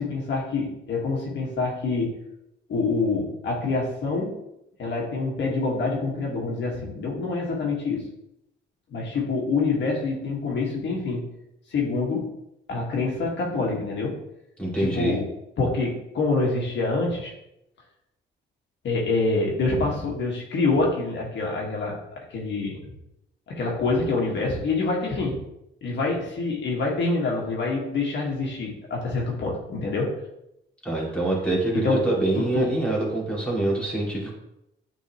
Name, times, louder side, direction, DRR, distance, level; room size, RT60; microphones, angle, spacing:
voice 1, 0.0-2.1 2.7-4.4 4.8-8.1 8.9-11.2 11.7-12.3 12.7-14.2 14.8-15.3 15.6-17.3 18.8-22.0 22.3-22.8 23.5-25.4 25.8-30.1 31.8-32.0 32.4-32.7, left 3 dB, 65° left, -2 dB, 1.7 m, -26 dB
voice 2, 14.6-15.2 30.8-34.3, right 2 dB, 5° left, -4 dB, 2.3 m, -25 dB
8.1 x 3.9 x 3.0 m, 0.84 s
cardioid pair, 90°, 20 cm